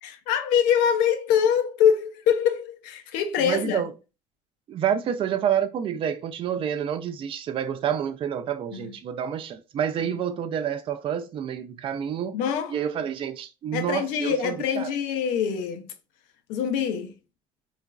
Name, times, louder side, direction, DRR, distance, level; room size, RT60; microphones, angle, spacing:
voice 1, 0.0-3.8 8.7-8.9 10.0-10.1 12.3-12.8 13.7-15.9 16.5-17.1, left 8 dB, 90° left, 0.5 m, -24 dB
voice 2, 3.4-3.9 4.7-12.4 12.7-14.9, right 9 dB, 40° right, 0.4 m, -28 dB
2.9 x 2.4 x 2.3 m
cardioid pair, 110°, 13 cm